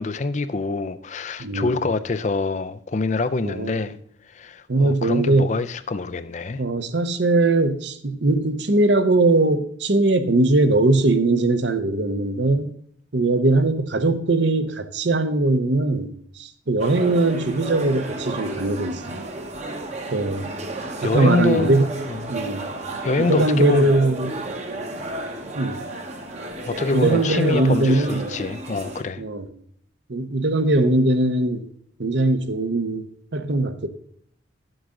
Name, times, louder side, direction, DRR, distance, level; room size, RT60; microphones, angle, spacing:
voice 1, 0.0-4.0 4.3-6.6 21.0-21.8 22.1-22.2 23.0-23.9 26.6-29.2, left 3 dB, 40° left, 0.4 m, -25 dB
voice 2, 1.4-1.8 3.4-3.9 4.7-5.5 6.6-12.7 13.1-19.2 20.1-20.5 21.0-21.9 22.3-22.7 23.2-24.4 25.5-25.8 26.9-28.4 29.2-29.5 30.1-31.7 32.0-33.1 33.3-33.9, right 2 dB, 65° right, 0.9 m, -20 dB
sound 1, 16.8-29.0, right 2 dB, 35° right, 1.0 m, -32 dB
12.0 x 7.9 x 3.8 m
head